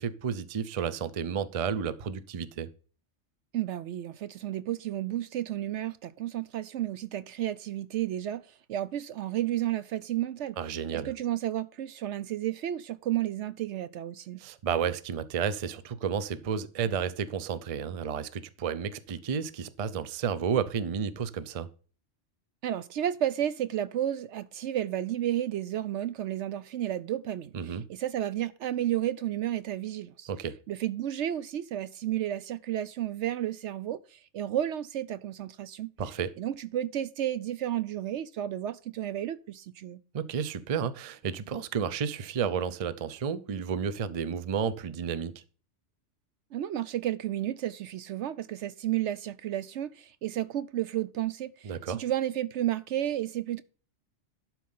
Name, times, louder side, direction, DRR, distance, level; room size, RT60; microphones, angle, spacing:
voice 1, 0.0-2.7 10.6-11.1 14.4-21.7 27.5-27.8 30.3-30.5 36.0-36.3 40.1-45.4 51.6-52.0, right 7 dB, 40° right, 0.5 m, -32 dB
voice 2, 3.5-8.4 8.7-10.6 10.9-14.4 22.6-30.3 30.7-35.9 36.4-40.0 46.5-53.6, right 12 dB, 70° right, 0.8 m, -32 dB
11.5 x 4.5 x 5.4 m
omnidirectional pair, 1.3 m